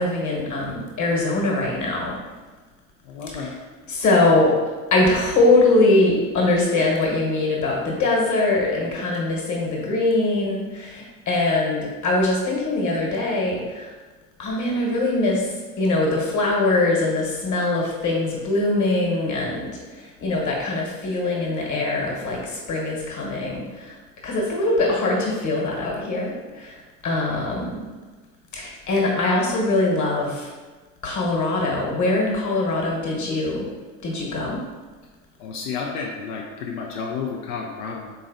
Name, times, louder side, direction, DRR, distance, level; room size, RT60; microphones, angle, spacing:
voice 1, 0.0-2.2 3.9-4.6 4.9-13.9 14.4-24.0 24.2-27.8 28.5-30.5 31.0-33.7 34.0-34.6, left 2 dB, 40° left, -2 dB, 1.2 m, -22 dB
voice 2, 3.0-3.5 35.4-38.1, left 5 dB, 85° left, -1 dB, 0.5 m, -31 dB
3.9 x 3.1 x 2.6 m, 1.3 s
hypercardioid pair, 70°, 45 cm